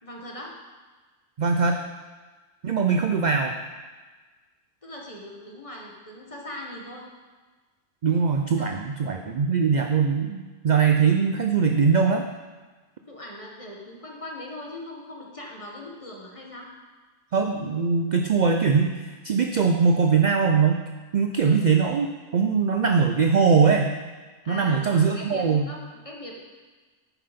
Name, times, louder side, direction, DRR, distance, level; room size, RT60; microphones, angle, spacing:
voice 1, 0.0-0.5 2.9-3.0 4.8-7.1 8.6-8.8 13.1-16.7 21.4-21.6 24.4-26.4, left 1 dB, 25° left, -2 dB, 1.3 m, -40 dB
voice 2, 1.4-1.8 2.6-3.5 8.0-12.2 17.3-20.8 21.1-22.1 22.3-23.9 24.5-25.7, right 5 dB, 55° right, 4 dB, 0.5 m, -21 dB
9.3 x 5.7 x 5.1 m, 1.3 s
omnidirectional pair, 1.3 m